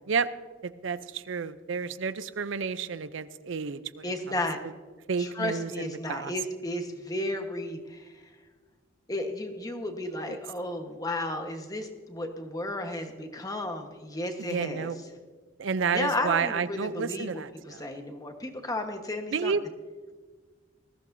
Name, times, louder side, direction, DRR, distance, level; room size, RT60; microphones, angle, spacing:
voice 1, 0.6-4.1 5.1-6.3 10.2-10.3 14.4-15.0 15.6-17.9 19.3-19.6, right 5 dB, 75° right, 14 dB, 0.5 m, -30 dB
voice 2, 4.0-4.6 5.2-8.1 9.1-14.9 15.9-17.3 17.7-19.5, left 1 dB, 20° left, 5 dB, 1.2 m, -33 dB
20.0 x 14.5 x 2.7 m, 1.4 s
head